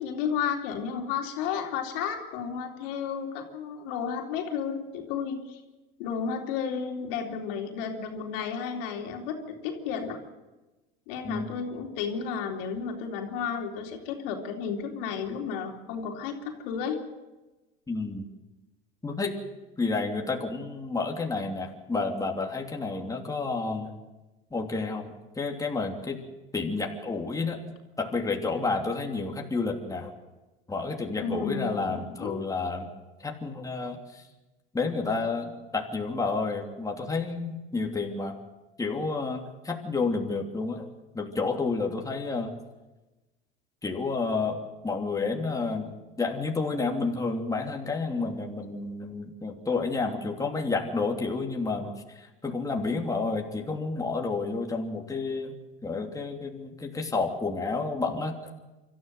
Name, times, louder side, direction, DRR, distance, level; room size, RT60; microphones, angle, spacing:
voice 1, 0.0-5.6 6.0-10.2 11.1-17.0 31.2-32.5, left 6 dB, 70° left, 3 dB, 3.9 m, -32 dB
voice 2, 17.9-18.2 19.0-19.4 19.8-23.9 24.5-26.2 26.5-27.6 28.0-30.1 30.7-32.9 33.2-34.2 34.7-38.3 38.8-40.9 41.1-42.5 43.8-45.9 46.2-58.4, left 3 dB, 10° left, 1 dB, 3.0 m, -30 dB
25.5 x 14.0 x 7.9 m, 1.1 s
hypercardioid pair, 95°, 29 cm